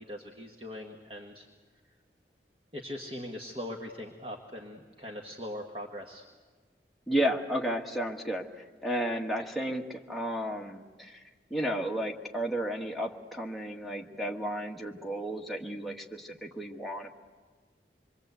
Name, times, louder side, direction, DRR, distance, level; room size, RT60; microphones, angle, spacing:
voice 1, 0.0-1.5 2.7-6.2, left 1 dB, 30° right, 1 dB, 1.4 m, -41 dB
voice 2, 7.1-11.2 11.5-17.1, right 1 dB, ahead, -1 dB, 1.5 m, -33 dB
26.5 x 22.5 x 8.1 m, 1.4 s
head